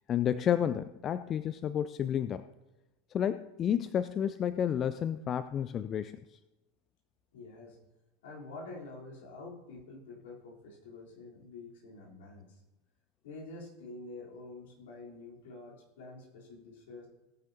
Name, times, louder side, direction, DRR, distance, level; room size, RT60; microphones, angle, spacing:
voice 1, 0.1-2.4 3.1-6.2, left 9 dB, 30° left, 13 dB, 0.3 m, -31 dB
voice 2, 7.3-7.8 8.2-12.6 13.2-17.1, left 3 dB, 60° left, -3 dB, 3.4 m, -47 dB
17.5 x 9.7 x 2.8 m, 1.1 s
figure-of-eight pair, 80°, 0 cm